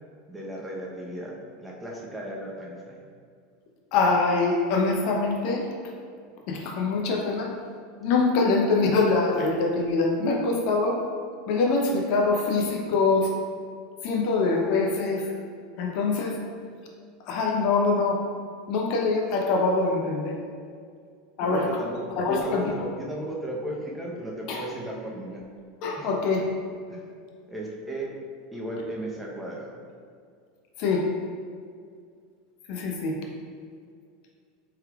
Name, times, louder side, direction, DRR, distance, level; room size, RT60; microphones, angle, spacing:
voice 1, 0.3-3.0 21.4-25.4 26.0-26.1 26.9-27.1 27.5-28.1 28.5-29.8, right 1 dB, 10° right, -3 dB, 0.8 m, -35 dB
voice 2, 3.9-5.6 6.5-7.5 8.0-11.0 11.5-13.3 14.0-15.3 15.8-16.4 17.3-18.2 18.7-20.3 21.4-21.7 22.2-22.7 24.5-24.6 25.8-26.4 30.8-31.1 32.7-33.2, left 3 dB, 60° left, 0 dB, 0.6 m, -24 dB
4.5 x 3.5 x 2.3 m, 2.2 s
hypercardioid pair, 105°, 0 cm